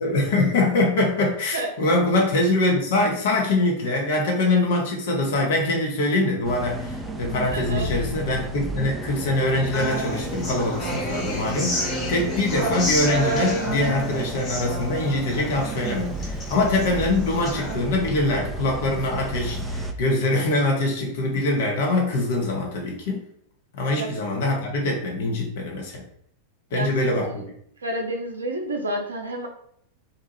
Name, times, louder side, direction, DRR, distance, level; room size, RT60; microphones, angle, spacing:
voice 1, 0.0-23.2 23.8-26.0 26.7-27.4, left 2 dB, 55° left, 0 dB, 0.8 m, -23 dB
voice 2, 1.5-1.9 7.5-7.9 24.0-24.1 26.7-27.4 27.8-29.5, right 1 dB, 75° right, 3 dB, 0.5 m, -30 dB
sound 1, 6.4-19.9, right 1 dB, 10° right, 0.3 m, -33 dB
Human voice / Acoustic guitar, 9.7-17.7, equal, 20° left, 1.3 m, -29 dB
2.7 x 2.3 x 2.9 m, 0.67 s
figure-of-eight pair, 90°, 0 cm